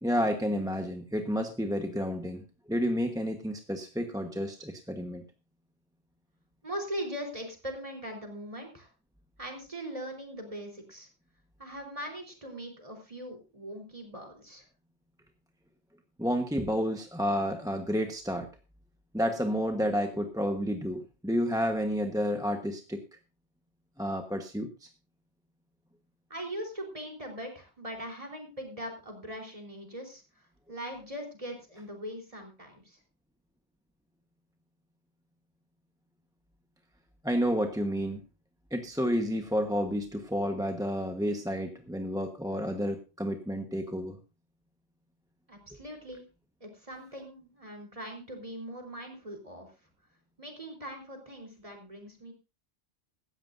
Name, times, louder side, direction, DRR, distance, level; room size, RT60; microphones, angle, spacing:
voice 1, 0.0-5.2 16.2-18.5 19.1-23.0 24.0-24.9 37.2-38.2 38.7-44.2, equal, 5° right, 4 dB, 1.1 m, -30 dB
voice 2, 6.6-8.9 9.4-11.1 11.6-14.6 26.3-30.2 30.7-33.0 45.5-46.2 46.6-49.7 50.4-52.3, equal, 30° right, 2 dB, 4.1 m, -40 dB
17.0 x 13.5 x 2.6 m, 0.29 s
omnidirectional pair, 1.1 m